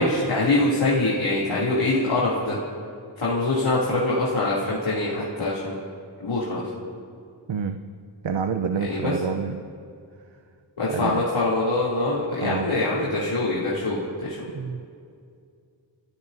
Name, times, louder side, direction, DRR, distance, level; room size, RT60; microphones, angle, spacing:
voice 1, 0.0-2.6 3.2-5.7 6.2-6.6 8.8-9.1 10.8-14.4, left 2 dB, 85° left, -9 dB, 3.1 m, -24 dB
voice 2, 7.5-7.8 8.2-9.6 10.9-11.2 12.4-12.7 14.5-14.8, right 6 dB, 75° right, 6 dB, 0.8 m, -28 dB
28.5 x 18.0 x 2.7 m, 2.3 s
cardioid pair, 55°, 46 cm